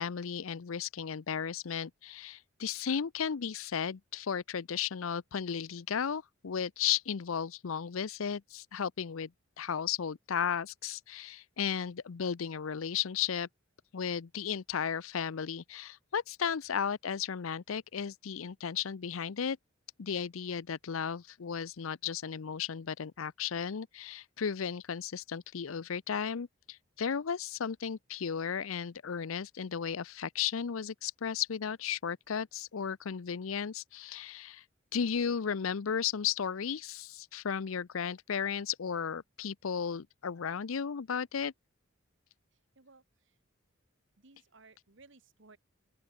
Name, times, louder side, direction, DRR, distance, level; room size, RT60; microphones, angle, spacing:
voice 1, 0.0-9.3 9.6-13.5 13.9-19.6 20.0-34.6 34.9-41.5, left 7 dB, 80° left, 0.6 m, -34 dB
voice 2, 42.5-43.4 44.2-45.6, right 3 dB, 60° right, 1.6 m, -60 dB
open air
head